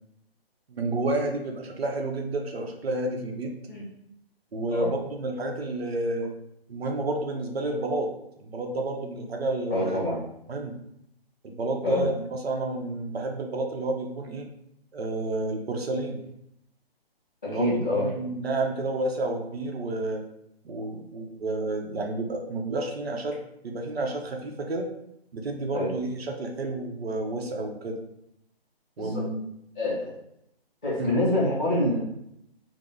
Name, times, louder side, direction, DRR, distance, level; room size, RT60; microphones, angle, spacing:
voice 1, 0.7-3.5 4.5-6.4 6.7-8.1 8.4-10.2 10.5-10.8 11.4-14.5 14.9-16.2 17.5-20.2 20.6-23.4 23.6-24.9 25.3-28.0 29.0-29.4 31.0-31.1, right 2 dB, 75° right, 2 dB, 0.7 m, -30 dB
voice 2, 9.7-10.2 11.8-12.0 17.4-18.0 25.7-25.9 29.0-29.2 29.8-30.1 30.8-32.0, left 1 dB, 5° left, -17 dB, 0.4 m, -26 dB
2.9 x 2.1 x 3.5 m, 0.78 s
hypercardioid pair, 155°, 31 cm